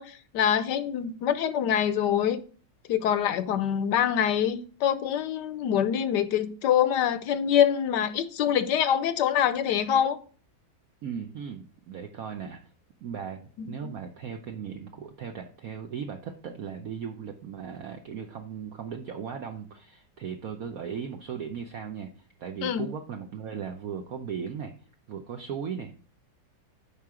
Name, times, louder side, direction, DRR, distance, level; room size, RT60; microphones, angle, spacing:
voice 1, 0.0-2.4 2.9-10.2 13.6-13.9 22.6-22.9, left 9 dB, 70° left, 1.2 m, -25 dB
voice 2, 11.0-12.6 13.0-24.7 25.1-26.1, right 7 dB, 60° right, 1.1 m, -37 dB
8.6 x 5.4 x 4.9 m
omnidirectional pair, 2.0 m